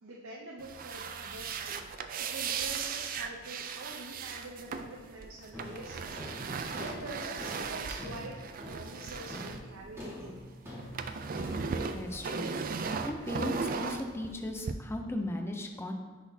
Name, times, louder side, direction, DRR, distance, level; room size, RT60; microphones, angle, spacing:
voice 1, 0.0-8.4 8.7-10.4, right 2 dB, 75° right, -3 dB, 0.7 m, -46 dB
sound 1, 0.6-10.4 10.7-14.7, right 5 dB, 45° right, 0.4 m, -37 dB
sound 2, 4.7-5.0 5.5-13.5, left 1 dB, 15° right, 1.5 m, -46 dB
voice 2, 11.9-15.9, left 1 dB, 10° left, 2 dB, 0.5 m, -37 dB
9.9 x 4.1 x 2.7 m, 1.4 s
head